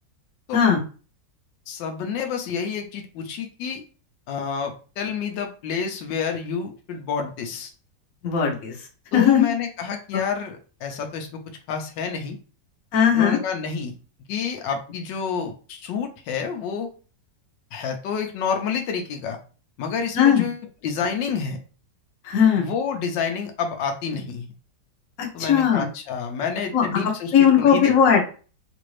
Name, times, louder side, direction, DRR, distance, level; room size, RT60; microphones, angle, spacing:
voice 1, 1.7-3.8 4.3-7.7 9.1-11.4 11.7-12.4 13.1-13.9 14.3-16.9 17.7-19.4 19.8-21.6 22.6-24.5 25.3-27.9, left 6 dB, 85° left, 4 dB, 1.3 m, -29 dB
voice 2, 8.2-8.7 9.1-9.5 10.1-10.2 12.9-13.4 20.2-20.4 22.2-22.7 25.2-25.8 26.7-28.2, left 8 dB, 55° left, 0 dB, 1.2 m, -18 dB
3.9 x 2.5 x 3.1 m, 0.37 s
omnidirectional pair, 1.9 m